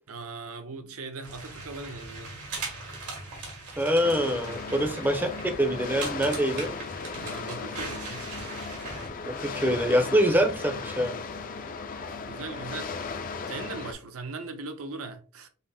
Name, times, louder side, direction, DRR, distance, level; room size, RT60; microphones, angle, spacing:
voice 1, 0.1-2.3 4.7-5.0 7.1-8.3 12.3-12.9 13.5-15.5, right 3 dB, 70° right, 0.7 m, -39 dB
sound 1, 1.2-9.1, right 3 dB, 90° right, 2.0 m, -40 dB
voice 2, 3.8-5.3 5.6-6.7 9.2-11.2, equal, 10° right, 0.6 m, -25 dB
sound 2, 4.0-13.9, left 4 dB, 40° left, 0.5 m, -36 dB
5.5 x 2.0 x 4.2 m
head